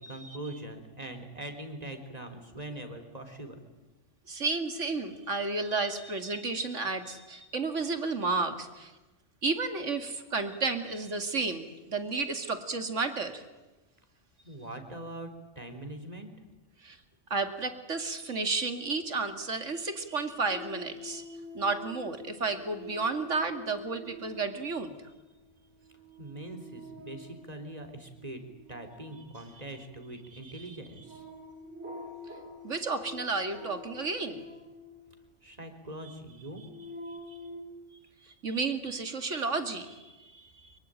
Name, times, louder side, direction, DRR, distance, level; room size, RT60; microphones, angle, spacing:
voice 1, 0.0-3.6 14.4-15.3 15.6-16.3 26.2-28.4 28.7-31.2 35.4-36.6, right 1 dB, 30° right, 6 dB, 3.7 m, -42 dB
voice 2, 4.3-8.9 9.4-13.4 16.8-17.0 17.3-21.3 21.5-25.0 30.3-30.8 32.6-34.4 36.0-36.1 37.1-37.4 38.4-40.7, right 3 dB, 80° right, 8 dB, 2.8 m, -32 dB
sound 1, 20.5-35.6 36.3-37.6, left 1 dB, 65° right, 8.1 m, -47 dB
25.0 x 22.5 x 9.0 m, 1.1 s
omnidirectional pair, 1.2 m